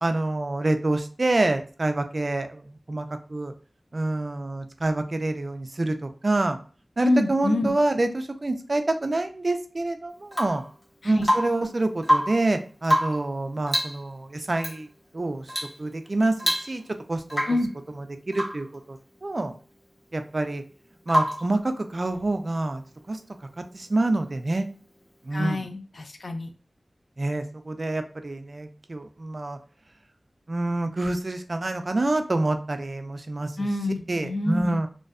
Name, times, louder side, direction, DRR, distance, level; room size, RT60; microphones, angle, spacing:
voice 1, 0.0-2.6 2.9-3.5 3.9-6.6 7.0-10.6 11.0-14.9 15.1-15.4 15.8-16.8 17.1-17.4 18.3-19.5 20.1-20.6 21.1-22.8 23.1-23.2 23.6-24.7 25.2-25.6 27.2-29.6 30.5-33.5 34.1-34.9, right 2 dB, 50° right, 7 dB, 0.3 m, -27 dB
voice 2, 7.0-7.7 11.0-11.3 17.5-17.7 25.3-26.5 33.6-34.8, left 2 dB, 75° left, 7 dB, 0.3 m, -26 dB
Rain / Water tap faucet / Drip, 10.3-10.7 11.2-11.7 12.0-12.5 12.8-13.3 13.7-14.0 14.6-14.8 15.5-15.8 16.1-16.2 16.4-17.0 17.3-17.7 18.3-18.7 21.1-21.5 23.4-23.5, equal, 30° left, 1.0 m, -26 dB
2.6 x 2.2 x 2.4 m, 0.39 s
wide cardioid pair, 75°, 0 cm